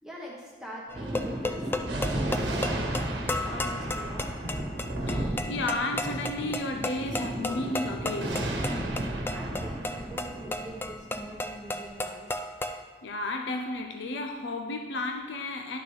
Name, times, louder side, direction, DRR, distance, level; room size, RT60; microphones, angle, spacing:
voice 1, 0.0-3.1 3.4-4.5 9.3-12.3, right 1 dB, 5° right, -5 dB, 1.1 m, -44 dB
sound 1, 0.9-12.8, left 2 dB, 10° left, 0.3 m, -34 dB
Thunder, 0.9-11.8, right 1 dB, 75° right, 1.1 m, -33 dB
voice 2, 4.9-8.5 13.0-15.8, left 2 dB, 75° left, 3 dB, 0.5 m, -33 dB
11.5 x 5.9 x 3.2 m, 1.4 s
head